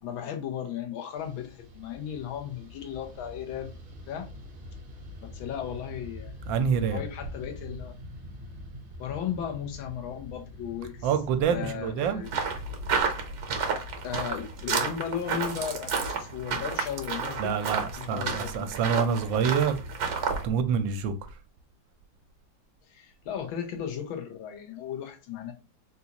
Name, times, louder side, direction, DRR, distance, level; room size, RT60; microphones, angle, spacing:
voice 1, 0.0-3.7 4.1-4.3 5.3-6.4 6.9-7.9 9.0-11.1 11.5-12.3 14.0-17.5 18.0-18.7 22.9-25.5, left 9 dB, 90° left, 1.6 m, -35 dB
Fixed-wing aircraft airplane, 1.1-18.5, left 1 dB, 45° right, 0.7 m, -45 dB
voice 2, 6.5-7.0 11.0-12.2 17.4-19.8 20.3-21.1, right 7 dB, 80° right, 1.3 m, -26 dB
sound 1, 12.3-20.4, right 5 dB, 60° right, 1.1 m, -31 dB
4.1 x 2.4 x 2.8 m
omnidirectional pair, 2.1 m